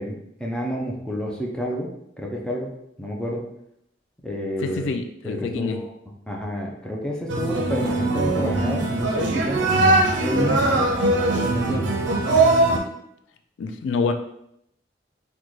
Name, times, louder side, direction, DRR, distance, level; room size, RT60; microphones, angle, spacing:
voice 1, 0.0-1.9 2.2-3.4 4.2-4.9 5.2-5.9 6.3-10.9 11.3-12.0, equal, 5° left, -1 dB, 0.4 m, -29 dB
voice 2, 4.6-5.8 13.6-14.1, left 4 dB, 80° left, 6 dB, 0.3 m, -26 dB
sound 1, 7.3-12.8, right 2 dB, 75° right, 0.5 m, -21 dB
3.7 x 2.2 x 3.1 m, 0.76 s
head